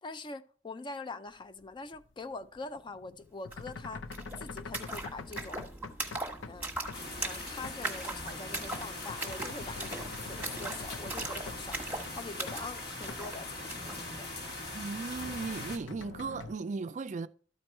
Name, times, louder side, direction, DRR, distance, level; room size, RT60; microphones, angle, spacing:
voice 1, 0.0-4.1 4.4-5.6 6.5-6.7 7.2-14.3, left 3 dB, 25° left, 0.4 m, -44 dB
sound 1, 1.6-6.6 6.9-7.1 7.6-8.0 8.3-11.8 12.1-12.7 13.0-13.3 13.7-13.8 14.4-16.5, left 4 dB, 85° left, 0.6 m, -46 dB
sound 2, 3.5-3.6 3.8-14.0, right 2 dB, 10° right, 1.2 m, -40 dB
sound 3, 6.9-15.8, left 2 dB, 55° left, 1.6 m, -41 dB
voice 2, 14.7-17.3, right 4 dB, 40° right, 0.4 m, -36 dB
12.5 x 4.5 x 4.4 m
head